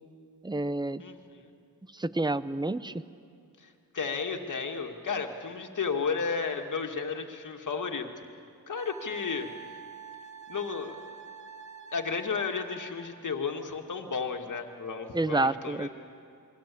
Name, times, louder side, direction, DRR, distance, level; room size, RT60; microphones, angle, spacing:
voice 1, 0.4-1.0 1.9-3.0 15.1-15.9, right 2 dB, 10° right, 14 dB, 0.7 m, -29 dB
voice 2, 1.0-1.5 3.6-8.1 8.7-9.5 10.5-11.0 11.9-15.9, left 5 dB, 55° left, 4 dB, 2.2 m, -33 dB
Wind instrument woodwind instrument, 8.8-13.2, right 6 dB, 50° right, 1.6 m, -46 dB
29.0 x 23.0 x 8.6 m, 2.4 s
wide cardioid pair, 110°, 38 cm